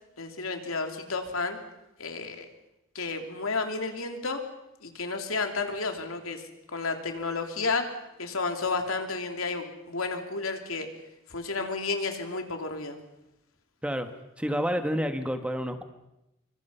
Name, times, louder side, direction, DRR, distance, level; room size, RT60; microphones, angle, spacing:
voice 1, 0.2-1.6 2.0-2.5 2.9-4.4 4.8-6.4 6.7-7.9 8.2-10.9 11.3-13.0, left 3 dB, 85° left, 5 dB, 3.0 m, -31 dB
voice 2, 14.4-15.8, equal, 5° right, 7 dB, 1.3 m, -29 dB
26.0 x 25.0 x 5.6 m, 0.89 s
head